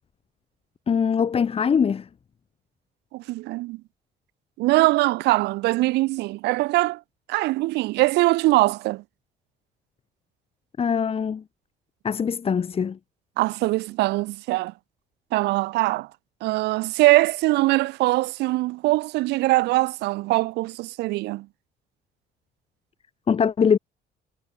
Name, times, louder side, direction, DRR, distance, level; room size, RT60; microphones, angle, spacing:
voice 1, 0.9-2.0 10.8-11.4 12.0-13.0 23.3-23.8, left 6 dB, 35° left, 1.6 m, -22 dB
voice 2, 3.1-3.8 4.6-7.0 7.3-9.0 13.4-14.7 15.3-16.1 16.4-21.5, right 20 dB, 85° right, 0.9 m, -22 dB
cardioid pair, 110°, 17 cm